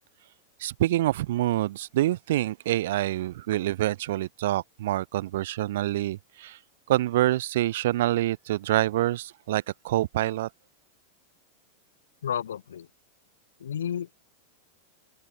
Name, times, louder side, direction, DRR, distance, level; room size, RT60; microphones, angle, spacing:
voice 1, 0.6-6.6 6.9-10.5, right 15 dB, 55° right, 1.7 m, -26 dB
voice 2, 12.2-12.9 13.6-14.1, left 9 dB, 65° left, 4.3 m, -31 dB
open air
figure-of-eight pair, 90°, 0 cm